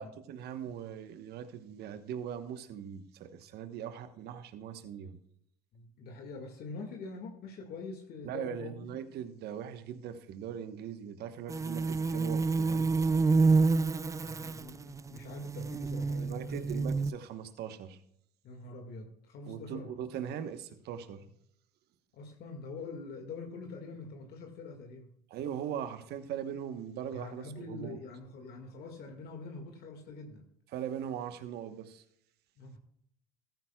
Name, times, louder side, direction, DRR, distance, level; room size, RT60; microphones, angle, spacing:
voice 1, 0.0-5.2 8.2-12.9 16.2-18.0 19.5-21.2 25.3-28.0 30.7-32.0, right 9 dB, 60° right, 9 dB, 1.2 m, -40 dB
voice 2, 5.7-8.9 14.2-16.8 18.4-19.9 20.3-20.4 22.1-25.2 27.1-30.5 32.6-32.8, left 3 dB, 55° left, 3 dB, 2.0 m, -45 dB
sound 1, 11.5-17.1, right 4 dB, 15° right, 0.4 m, -28 dB
14.5 x 13.5 x 2.3 m, 0.73 s
supercardioid pair, 85°, 19 cm